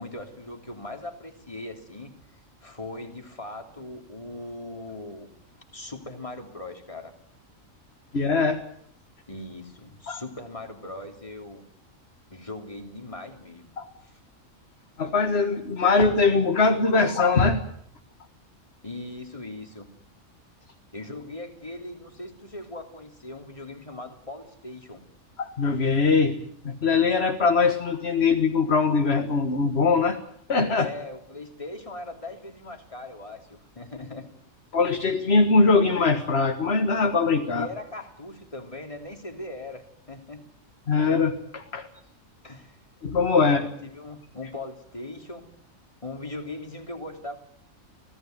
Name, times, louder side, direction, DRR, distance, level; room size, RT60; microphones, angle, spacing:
voice 1, 0.0-2.2 2.6-5.3 5.7-7.1 9.3-11.6 12.3-13.7 14.0-14.2 18.8-19.9 20.9-25.0 30.8-34.3 37.5-40.4 42.4-42.8 43.5-45.5 46.0-47.4, left 2 dB, 25° left, 4 dB, 3.1 m, -39 dB
voice 2, 8.1-8.6 10.1-10.2 13.8-13.9 15.0-17.6 25.4-26.4 26.6-30.2 30.5-30.9 34.7-37.7 40.9-41.9 43.0-43.6, left 4 dB, 50° left, 5 dB, 1.9 m, -22 dB
26.0 x 17.5 x 9.4 m, 0.67 s
omnidirectional pair, 1.4 m